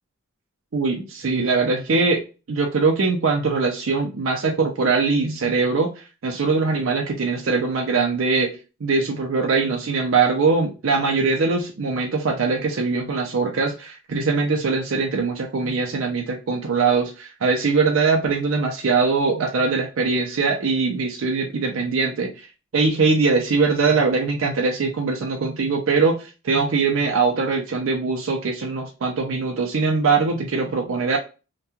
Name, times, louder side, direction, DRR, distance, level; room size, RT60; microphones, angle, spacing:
voice 1, 0.7-2.2 2.5-8.5 8.8-22.5 22.7-31.2, right 4 dB, 70° right, 1 dB, 0.5 m, -22 dB
2.9 x 2.2 x 2.3 m, 0.32 s
head